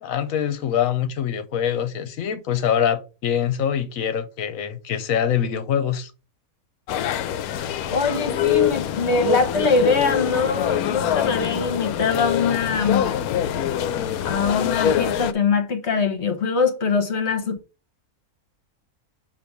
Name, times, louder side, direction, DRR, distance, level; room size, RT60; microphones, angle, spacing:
voice 1, 0.0-6.1, left 9 dB, 70° left, 1.2 m, -24 dB
sound 1, 6.9-15.3, left 10 dB, 90° left, 1.1 m, -24 dB
voice 2, 7.9-13.1 14.2-17.6, left 4 dB, 50° left, 1.3 m, -22 dB
6.8 x 2.9 x 5.9 m
omnidirectional pair, 1.5 m